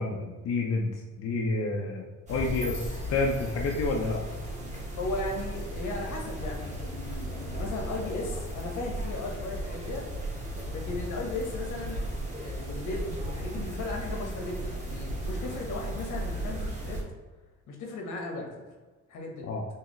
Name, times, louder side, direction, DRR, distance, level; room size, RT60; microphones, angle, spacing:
voice 1, 0.0-4.2 19.4-19.6, left 3 dB, 55° left, -1 dB, 0.6 m, -29 dB
sound 1, 2.3-17.0, right 1 dB, 25° right, 1.3 m, -35 dB
voice 2, 5.0-10.1 10.7-12.0 12.4-17.0 17.7-18.5 19.1-19.5, left 2 dB, 80° left, 0 dB, 1.2 m, -36 dB
4.6 x 2.8 x 3.1 m, 1.3 s
cardioid pair, 90°, 30 cm